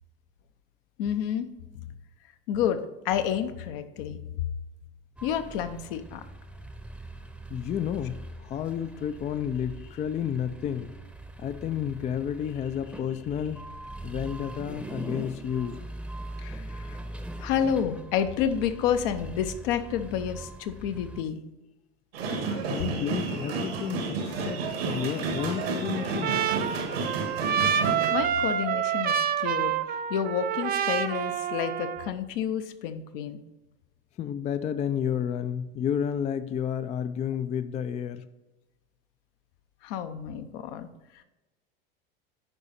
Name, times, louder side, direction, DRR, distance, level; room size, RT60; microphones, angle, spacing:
voice 1, 1.0-1.5 2.5-4.2 5.2-6.2 16.4-17.0 17.4-21.4 28.1-29.7 30.1-33.4 39.8-40.9, left 9 dB, 65° left, 9 dB, 0.8 m, -29 dB
sound 1, 5.2-21.2, right 1 dB, 5° right, 0.8 m, -42 dB
voice 2, 7.5-10.9 11.4-13.7 14.0-15.8 22.7-24.6 24.9-26.5 34.2-38.3, left 9 dB, 25° left, 11 dB, 0.4 m, -31 dB
sound 2, 22.1-28.1, right 4 dB, 80° right, 1.8 m, -31 dB
Trumpet, 25.4-32.1, right 8 dB, 30° right, 0.5 m, -28 dB
10.0 x 4.0 x 4.2 m, 1.1 s
hypercardioid pair, 90°, 30 cm